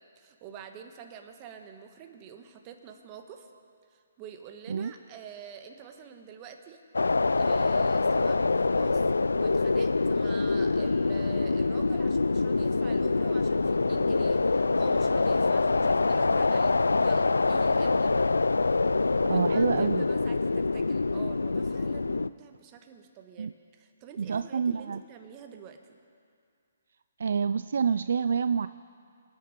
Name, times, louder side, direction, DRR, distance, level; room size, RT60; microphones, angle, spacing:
voice 1, 0.0-3.5 3.9-6.8 7.4-18.1 19.3-26.0, right 7 dB, 30° right, 5 dB, 1.4 m, -47 dB
sound 1, 6.9-22.3, left 3 dB, 85° left, 0.3 m, -25 dB
voice 2, 19.2-20.0 23.4-23.5 24.2-25.0 27.2-28.7, right 6 dB, 65° right, 13 dB, 0.3 m, -27 dB
24.5 x 9.8 x 5.1 m, 2.3 s
hypercardioid pair, 140°, 0 cm